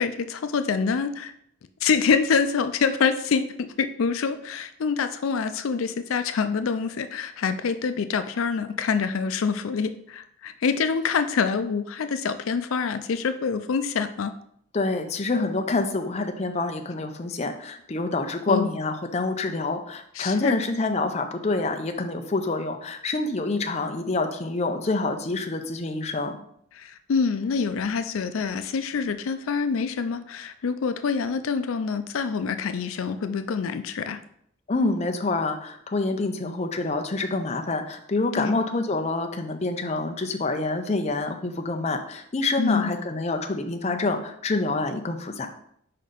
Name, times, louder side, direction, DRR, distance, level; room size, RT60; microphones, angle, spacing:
voice 1, 0.0-1.3 1.8-14.3 18.5-18.7 20.2-20.6 26.8-34.2 38.3-38.5 42.6-42.9, left 5 dB, 85° left, 10 dB, 0.4 m, -26 dB
voice 2, 14.7-26.4 34.7-45.5, left 3 dB, 30° left, 5 dB, 0.5 m, -27 dB
5.0 x 4.2 x 5.1 m, 0.69 s
head